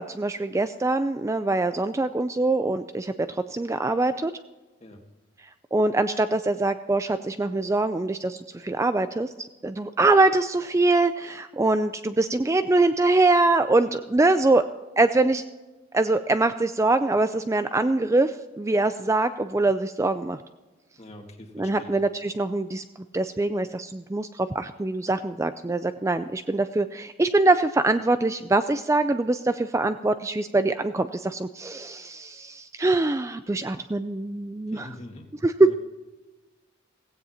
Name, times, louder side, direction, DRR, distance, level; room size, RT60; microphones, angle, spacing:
voice 1, 0.0-4.3 5.7-14.7 15.0-15.4 15.9-20.4 21.6-22.8 23.1-34.9 35.4-35.7, right 2 dB, 15° right, 10 dB, 0.3 m, -23 dB
voice 2, 21.0-22.0 34.7-35.3 35.6-35.7, left 1 dB, 30° left, 3 dB, 1.8 m, -44 dB
16.5 x 16.0 x 2.8 m, 1.2 s
head